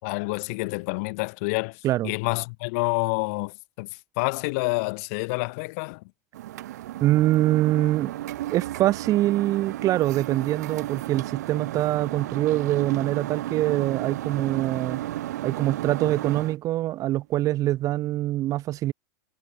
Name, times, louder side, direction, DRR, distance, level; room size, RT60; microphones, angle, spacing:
voice 1, 0.0-3.9 4.2-6.0, left 29 dB, 60° left, 5.3 m, -28 dB
sound 1, 6.3-16.6, right 14 dB, 80° right, 3.8 m, -33 dB
voice 2, 7.0-8.2 8.5-15.0 15.4-18.9, right 15 dB, 40° right, 2.9 m, -24 dB
supercardioid pair, 130°, 9 cm